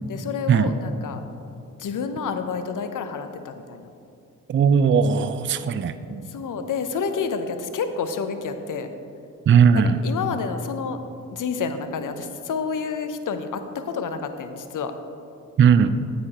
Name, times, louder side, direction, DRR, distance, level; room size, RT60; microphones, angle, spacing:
voice 1, 0.1-1.2 1.8-3.9 6.2-8.9 10.0-11.0 11.3-14.9, left 5 dB, 55° left, 8 dB, 0.8 m, -29 dB
voice 2, 4.5-6.2 9.5-10.0 15.6-15.9, right 7 dB, 30° right, 12 dB, 0.4 m, -18 dB
9.4 x 8.3 x 3.0 m, 2.6 s
hypercardioid pair, 40°, 38 cm